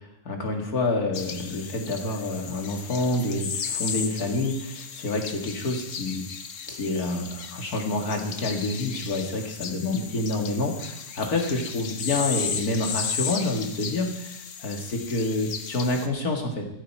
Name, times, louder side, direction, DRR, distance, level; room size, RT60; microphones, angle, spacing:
voice 1, 0.2-6.3 6.7-16.7, left 2 dB, 85° left, 2 dB, 2.7 m, -28 dB
sound 1, 1.1-16.1, left 7 dB, 60° left, 1.3 m, -35 dB
15.5 x 13.5 x 4.8 m, 0.81 s
omnidirectional pair, 1.5 m